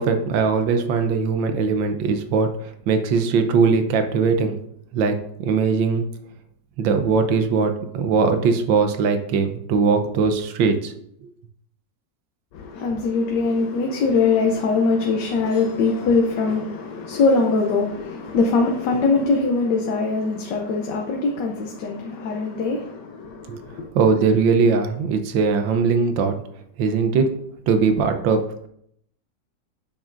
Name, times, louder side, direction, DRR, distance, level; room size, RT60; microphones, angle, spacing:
voice 1, 0.0-2.5 2.9-4.6 4.9-6.1 6.8-10.9 23.5-23.6 23.9-26.4 26.8-27.3 27.7-28.4, right 5 dB, 85° right, 1.5 m, -20 dB
voice 2, 12.5-23.9, left 4 dB, 70° left, 1.3 m, -22 dB
8.5 x 6.0 x 2.5 m
omnidirectional pair, 2.0 m